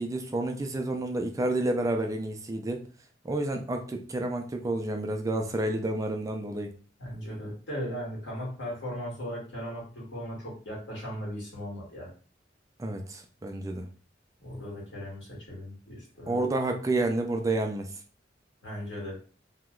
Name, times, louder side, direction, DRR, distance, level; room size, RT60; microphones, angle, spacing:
voice 1, 0.0-2.9 3.2-6.7 12.8-13.9 16.3-17.9, right 2 dB, 20° right, 4 dB, 0.3 m, -30 dB
voice 2, 7.0-12.1 14.4-16.4 18.6-19.2, equal, 70° left, -4 dB, 1.5 m, -37 dB
2.9 x 2.1 x 3.6 m, 0.40 s
head